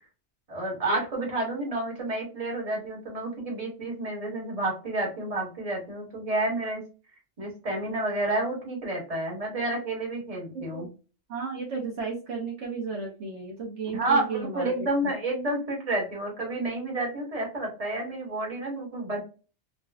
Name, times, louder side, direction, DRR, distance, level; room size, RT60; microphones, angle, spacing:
voice 1, 0.5-6.8 7.4-10.9 13.9-19.2, right 2 dB, 30° right, -2 dB, 1.3 m, -30 dB
voice 2, 10.5-10.9 11.3-14.7, right 4 dB, 65° right, -1 dB, 1.1 m, -34 dB
3.9 x 2.2 x 2.3 m, 0.34 s
omnidirectional pair, 1.4 m